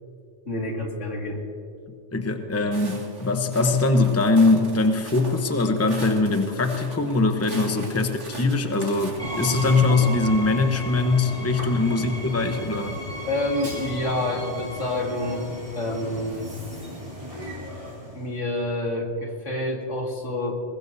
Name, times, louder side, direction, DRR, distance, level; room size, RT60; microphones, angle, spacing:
voice 1, 0.5-1.4 7.7-7.9 11.6-11.7 13.2-15.5 15.8-16.5 18.1-20.5, left 1 dB, 85° left, 0 dB, 2.6 m, -28 dB
voice 2, 2.1-13.0, left 3 dB, 15° left, 5 dB, 0.9 m, -22 dB
Walk footsteps, 2.7-9.2, right 2 dB, 75° right, 2.7 m, -40 dB
Train, 9.2-18.4, equal, 25° right, 3.6 m, -34 dB
22.0 x 20.0 x 2.8 m, 2.4 s
omnidirectional pair, 1.2 m